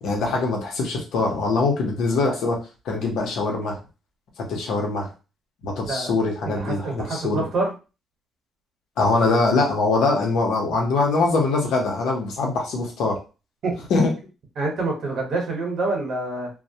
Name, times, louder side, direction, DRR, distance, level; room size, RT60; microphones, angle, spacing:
voice 1, 0.0-2.6 2.8-3.8 4.4-5.1 5.6-7.4 9.0-13.2 13.9-14.1, left 3 dB, 80° left, 0 dB, 0.8 m, -23 dB
voice 2, 6.4-7.7 13.6-13.8 14.6-16.5, right 3 dB, 70° right, 0 dB, 1.0 m, -26 dB
2.2 x 2.1 x 2.7 m, 0.31 s
cardioid pair, 90°, 0 cm